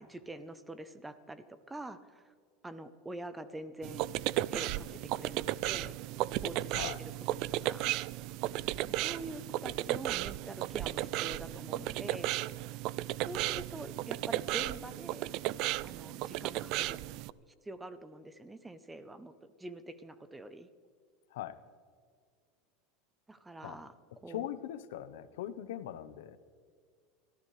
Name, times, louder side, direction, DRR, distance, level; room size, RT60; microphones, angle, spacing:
voice 1, 0.0-2.3 2.6-4.1 4.5-5.9 6.4-7.9 8.9-12.3 13.3-15.3 15.8-17.0 17.6-20.7 23.3-23.9 24.2-24.5, right 2 dB, 10° right, 12 dB, 0.7 m, -45 dB
sound 1, 3.8-17.3, right 16 dB, 50° right, 0.3 m, -35 dB
voice 2, 24.3-26.4, left 12 dB, 85° left, 13 dB, 0.9 m, -40 dB
24.5 x 14.0 x 3.3 m, 2.1 s
supercardioid pair, 155°, 0 cm